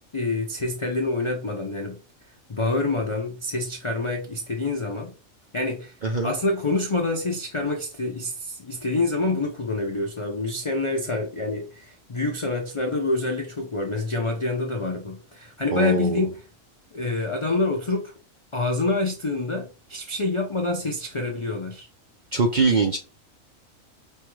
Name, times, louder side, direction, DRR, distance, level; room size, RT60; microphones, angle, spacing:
voice 1, 0.1-2.0 2.5-5.1 5.5-6.0 6.2-16.4 16.9-18.1 18.5-21.9, left 2 dB, 55° left, 0.3 m, -27 dB
voice 2, 15.7-16.3 22.3-23.0, right 3 dB, 60° right, 0.5 m, -22 dB
5.3 x 2.2 x 3.1 m
omnidirectional pair, 1.4 m